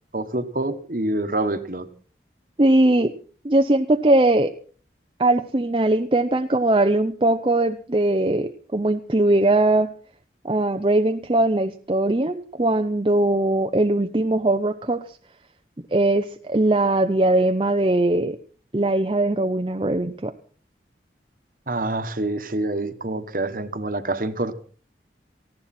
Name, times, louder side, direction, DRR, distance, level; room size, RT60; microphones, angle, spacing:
voice 1, 0.1-1.9 21.7-24.6, right 2 dB, 50° right, 11 dB, 1.4 m, -26 dB
voice 2, 2.6-3.1 3.4-4.5 5.2-9.9 10.4-15.0 15.9-18.4 18.7-20.3, right 2 dB, 30° right, 6 dB, 0.7 m, -20 dB
19.0 x 15.0 x 4.3 m, 0.43 s
head